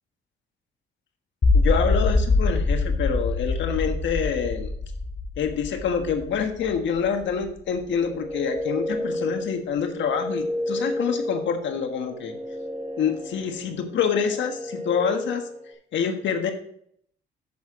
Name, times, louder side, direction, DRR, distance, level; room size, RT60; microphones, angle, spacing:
sound 1, 1.4-7.5, left 3 dB, 40° left, 1.8 m, -24 dB
voice 1, 1.5-4.7 5.4-12.3 13.0-15.4 15.9-16.5, left 7 dB, 70° left, 5 dB, 1.5 m, -26 dB
sound 2, 7.9-15.7, left 1 dB, 40° right, 2.2 m, -32 dB
9.4 x 6.5 x 3.8 m, 0.64 s
cardioid pair, 90°, 20 cm